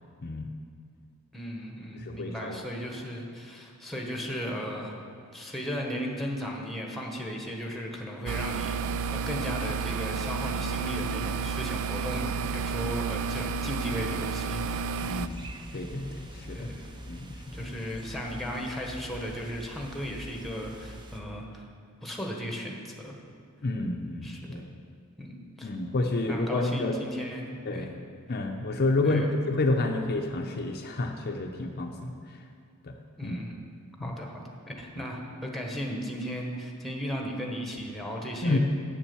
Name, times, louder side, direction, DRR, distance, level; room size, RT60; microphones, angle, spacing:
voice 1, 1.3-5.0 5.3-15.0 16.5-16.9 17.5-21.6 22.0-23.1 24.2-24.4 25.2-25.7 26.3-27.9 29.0-29.3 33.2-33.5 34.0-38.6, equal, ahead, 0 dB, 1.3 m, -36 dB
voice 2, 1.9-2.6 12.8-13.0 15.0-15.4 15.7-16.7 17.1-17.4 23.6-24.7 25.6-27.0 27.7-27.9 28.3-32.4 32.8-32.9 33.2-33.4 34.0-34.2 35.0-35.1 38.4-38.6, left 2 dB, 45° left, 2 dB, 0.7 m, -30 dB
sound 1, 8.3-15.3, right 5 dB, 70° right, 0.4 m, -31 dB
sound 2, 15.0-21.2, equal, 20° right, 0.8 m, -45 dB
8.9 x 7.3 x 7.0 m, 2.3 s
head